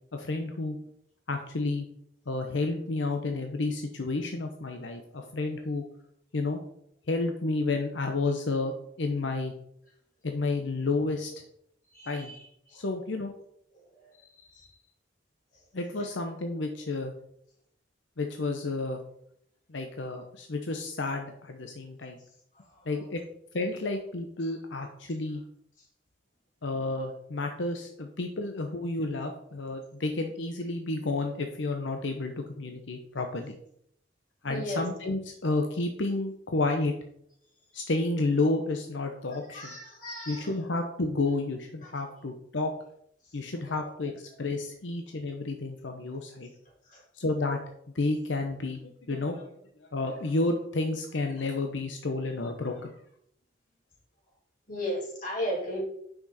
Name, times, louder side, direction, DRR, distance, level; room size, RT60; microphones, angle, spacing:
voice 1, 0.1-0.8 1.3-1.9 2.3-5.8 6.3-6.6 7.1-9.5 10.2-11.3 12.1-12.3 12.7-13.3 15.7-17.1 18.2-19.0 19.7-22.2 22.9-23.2 23.5-25.4 26.6-33.5 34.4-36.9 37.7-39.8 40.3-42.7 43.3-46.5 47.1-47.6 47.9-53.0, left 2 dB, 85° left, 4 dB, 0.9 m, -31 dB
voice 2, 11.9-12.4 14.2-14.7 34.5-34.8 39.5-40.5 41.8-41.9 43.7-43.8 46.9-47.0 54.7-55.8, equal, 45° left, -4 dB, 3.9 m, -35 dB
8.9 x 6.2 x 4.2 m, 0.71 s
head